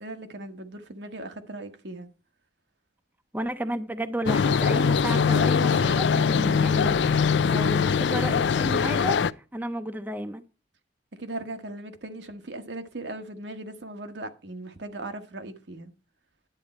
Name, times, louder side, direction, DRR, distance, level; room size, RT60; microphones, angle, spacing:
voice 1, 0.0-2.1 11.2-15.9, right 2 dB, 80° right, 1.3 m, -38 dB
voice 2, 3.3-7.0 7.5-9.2 9.5-10.4, right 1 dB, 10° right, 0.6 m, -32 dB
sound 1, 4.3-9.3, left 6 dB, 80° left, 0.4 m, -22 dB
10.5 x 8.3 x 4.3 m
head